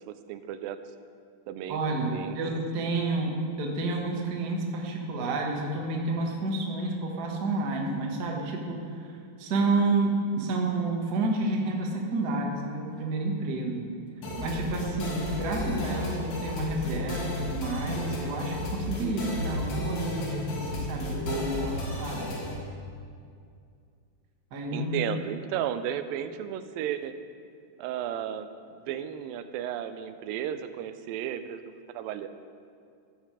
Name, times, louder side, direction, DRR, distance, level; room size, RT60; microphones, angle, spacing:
voice 1, 0.1-0.8 1.5-1.8 2.1-2.4 24.7-27.1 27.8-28.5 28.9-31.6 31.9-32.3, right 10 dB, 85° right, 11 dB, 2.3 m, -33 dB
voice 2, 1.7-3.3 3.6-13.8 14.4-22.4 24.5-24.9, right 2 dB, 60° right, 0 dB, 1.0 m, -30 dB
sound 1, 14.2-22.6, left 2 dB, 85° left, 3.6 m, -33 dB
14.0 x 8.4 x 4.8 m, 2.3 s
omnidirectional pair, 4.0 m